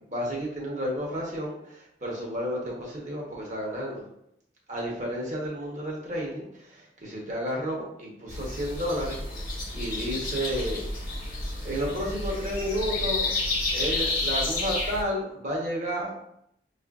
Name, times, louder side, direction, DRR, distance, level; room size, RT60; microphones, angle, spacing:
voice 1, 0.1-4.0 4.7-11.2 11.6-13.3 13.7-16.2, equal, 45° right, -3 dB, 1.0 m, -32 dB
sound 1, 8.3-15.0, left 2 dB, 50° left, 1.1 m, -30 dB
5.5 x 2.5 x 2.4 m, 0.75 s
head